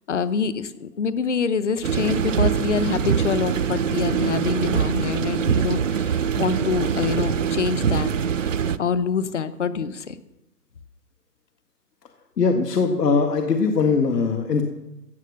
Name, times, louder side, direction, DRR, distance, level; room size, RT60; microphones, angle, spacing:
voice 1, 0.1-8.1 8.8-10.2, left 6 dB, 45° left, 15 dB, 0.8 m, -25 dB
sound 1, 1.8-8.8, right 7 dB, 50° right, 0.5 m, -23 dB
voice 2, 12.4-14.6, left 4 dB, 70° left, 4 dB, 1.8 m, -21 dB
15.5 x 8.5 x 6.5 m, 0.96 s
hypercardioid pair, 170°, 50 cm